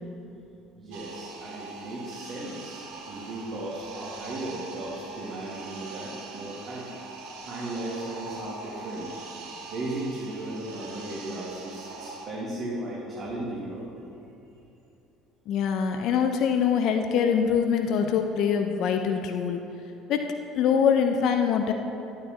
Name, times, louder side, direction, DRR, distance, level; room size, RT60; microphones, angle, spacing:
voice 1, 0.8-6.9 7.4-9.1 9.6-13.8, right 1 dB, 50° right, -7 dB, 2.0 m, -36 dB
sound 1, 0.9-12.3, right 3 dB, 65° right, 1.1 m, -42 dB
voice 2, 15.5-19.6 20.1-20.3 20.5-21.7, left 7 dB, 60° left, 5 dB, 0.6 m, -24 dB
11.0 x 9.6 x 3.0 m, 2.9 s
hypercardioid pair, 60°, 0 cm